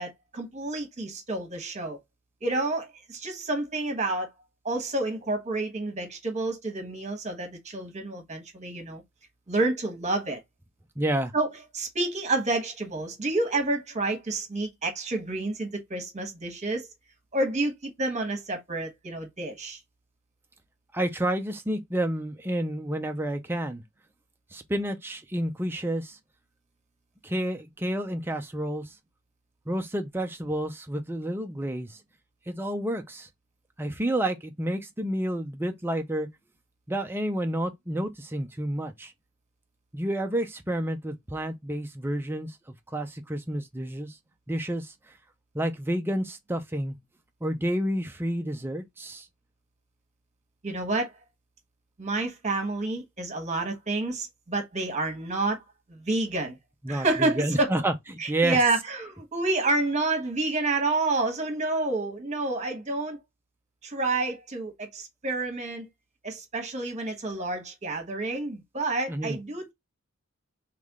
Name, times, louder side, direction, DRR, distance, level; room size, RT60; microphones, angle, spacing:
voice 1, 0.0-2.0 2.4-4.3 4.6-9.0 9.5-10.4 11.3-16.9 17.3-19.8 50.6-51.1 52.0-55.6 55.9-56.6 56.9-57.7 58.2-63.2 63.8-65.9 66.2-69.7, right 2 dB, 35° right, 1.3 m, -29 dB
voice 2, 11.0-11.3 20.9-23.8 24.5-26.2 27.2-28.9 29.7-32.0 32.5-33.3 33.8-36.3 36.9-39.1 39.9-44.2 44.5-44.9 45.5-47.0 47.4-49.3 56.8-57.9 58.3-58.6 69.1-69.4, right 1 dB, 10° right, 0.5 m, -30 dB
3.4 x 3.2 x 3.6 m
head